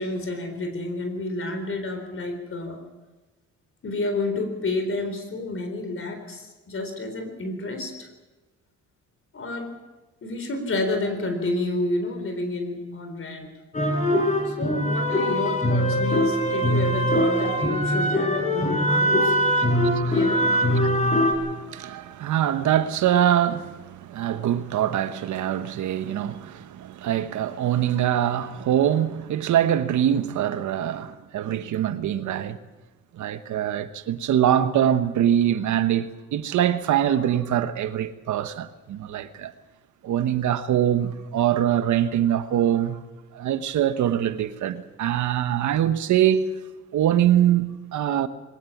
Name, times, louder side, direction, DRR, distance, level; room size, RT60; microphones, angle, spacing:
voice 1, 0.0-2.8 3.8-8.1 9.3-9.7 10.2-13.5 14.4-19.3 20.1-20.5, left 2 dB, 45° left, 4.1 m, -30 dB
sound 1, 13.7-21.3, equal, 25° left, 4.5 m, -22 dB
voice 2, 19.7-20.2 20.5-32.6 33.2-39.5 40.0-43.0 43.3-46.5 46.9-48.3, right 10 dB, 75° right, 1.2 m, -24 dB
21.0 x 18.5 x 7.3 m
cardioid pair, 90°, 30 cm